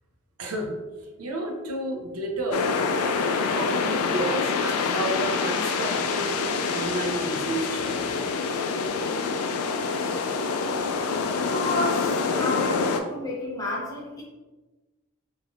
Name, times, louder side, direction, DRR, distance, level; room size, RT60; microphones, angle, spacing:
voice 1, 0.4-2.7 3.5-6.4 6.7-8.1, right 1 dB, 85° right, 2 dB, 0.6 m, -31 dB
sound 1, 2.5-13.0, left 4 dB, 85° left, 0.3 m, -26 dB
voice 2, 11.5-14.2, left 2 dB, 15° left, -4 dB, 0.6 m, -31 dB
3.6 x 2.6 x 2.3 m, 1.2 s
head